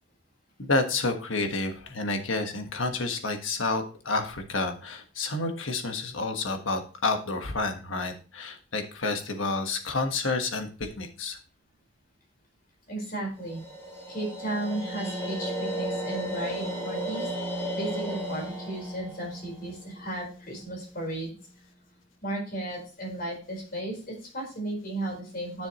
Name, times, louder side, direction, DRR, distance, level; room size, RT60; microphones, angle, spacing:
voice 1, 0.6-11.4, left 3 dB, 85° left, 5 dB, 1.4 m, -29 dB
voice 2, 12.9-13.6 14.1-21.4 22.2-25.7, right 1 dB, 50° left, 0 dB, 4.4 m, -35 dB
sound 1, 13.4-20.6, equal, 10° left, 2.8 m, -34 dB
10.0 x 6.9 x 3.0 m, 0.36 s
head